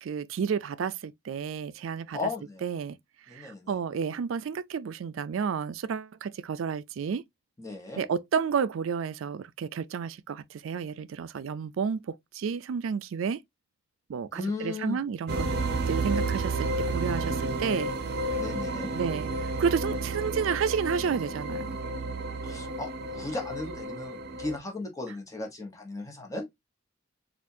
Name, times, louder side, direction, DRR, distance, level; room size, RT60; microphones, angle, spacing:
voice 1, 0.0-2.2 2.6-3.0 3.3-7.2 8.0-13.4 14.1-15.5 15.9-17.9 18.9-21.8, right 6 dB, 85° right, 0.4 m, -31 dB
voice 2, 2.1-2.6 3.3-3.8 7.6-8.1 14.3-15.0 18.4-18.9 22.4-26.5, left 3 dB, 15° left, 1.0 m, -36 dB
sound 1, 15.3-24.6, right 2 dB, 55° right, 0.7 m, -31 dB
4.4 x 2.4 x 2.7 m
head